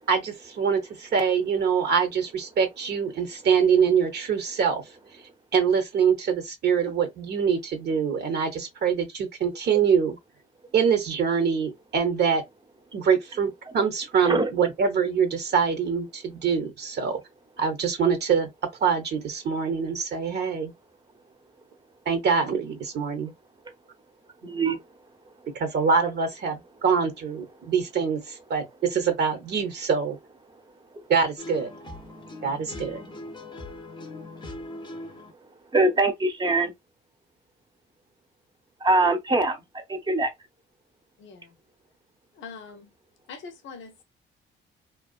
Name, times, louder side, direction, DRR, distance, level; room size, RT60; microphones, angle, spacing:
voice 1, 0.1-4.8 5.5-10.2 10.7-12.4 12.9-17.2 17.6-18.5 18.8-20.7 22.1-23.3 25.5-30.2 31.1-31.7 32.4-33.0, right 6 dB, 60° right, 0.7 m, -24 dB
voice 2, 24.4-24.8 35.7-36.7 38.8-39.6 39.9-40.3, right 2 dB, 20° right, 0.7 m, -22 dB
sound 1, 31.4-35.3, left 1 dB, 20° left, 0.6 m, -40 dB
voice 3, 32.7-33.2 41.2-41.6 42.3-42.9 43.3-44.0, left 5 dB, 70° left, 0.7 m, -44 dB
2.6 x 2.3 x 2.3 m
cardioid pair, 90°, 20 cm